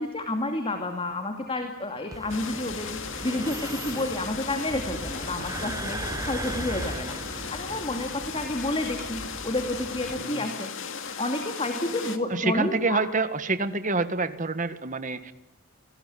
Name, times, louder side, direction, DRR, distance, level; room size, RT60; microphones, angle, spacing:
voice 1, 0.0-7.1 7.5-10.7 11.2-13.0, left 1 dB, 25° left, 5 dB, 2.5 m, -30 dB
sound 1, 2.1-10.2, right 2 dB, 15° right, 1.0 m, -38 dB
sound 2, 2.3-12.2, left 5 dB, 60° left, 2.4 m, -36 dB
voice 2, 12.3-15.3, right 3 dB, 35° right, 10 dB, 1.8 m, -27 dB
29.5 x 19.5 x 9.5 m, 0.86 s
head